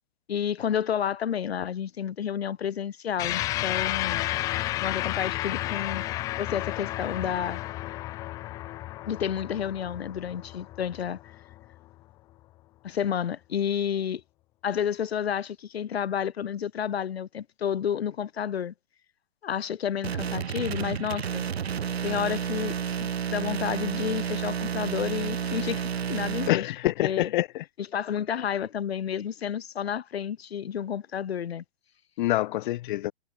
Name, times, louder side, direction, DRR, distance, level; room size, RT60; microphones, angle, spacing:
voice 1, 0.3-4.2 4.8-6.0 6.4-7.6 9.1-11.3 12.8-14.2 14.6-18.7 19.4-21.4 22.0-27.3 27.8-31.6, left 8 dB, 85° left, 1.6 m, -30 dB
sound 1, 3.2-11.9, left 16 dB, 10° left, 0.3 m, -32 dB
sound 2, 20.0-26.5, right 8 dB, 90° right, 1.4 m, -30 dB
voice 2, 26.5-27.6 32.2-33.1, left 16 dB, 55° left, 0.6 m, -26 dB
hypercardioid pair, 135°, 30 cm